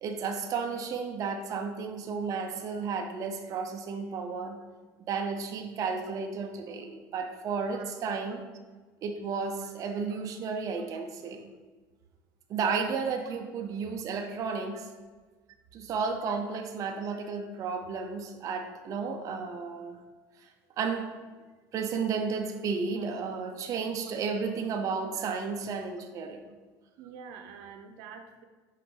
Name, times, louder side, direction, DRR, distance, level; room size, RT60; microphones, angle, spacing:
voice 1, 0.0-4.6 5.1-8.4 9.0-11.5 12.5-14.8 15.7-20.0 20.8-21.1 21.7-26.4, right 5 dB, 45° right, 4 dB, 0.7 m, -33 dB
voice 2, 16.3-16.6 18.0-18.1 23.0-23.1 25.1-25.3 27.0-28.4, right 6 dB, 80° right, 5 dB, 0.7 m, -48 dB
6.4 x 5.0 x 3.8 m, 1.3 s
cardioid pair, 140°, 8 cm